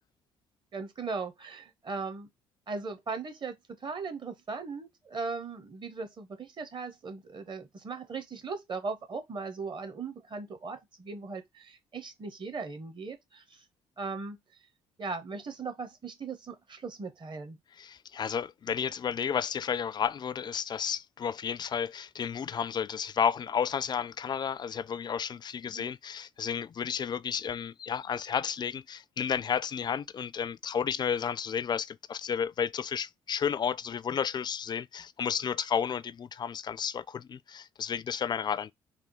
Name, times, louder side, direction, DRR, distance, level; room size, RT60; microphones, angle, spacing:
voice 1, 0.7-2.3 2.7-13.6 14.0-14.4 15.0-17.6 25.7-25.9, right 4 dB, 40° right, 1.1 m, -38 dB
voice 2, 17.8-38.7, left 7 dB, 35° left, 0.3 m, -32 dB
3.4 x 2.6 x 3.7 m
hypercardioid pair, 45°, 13 cm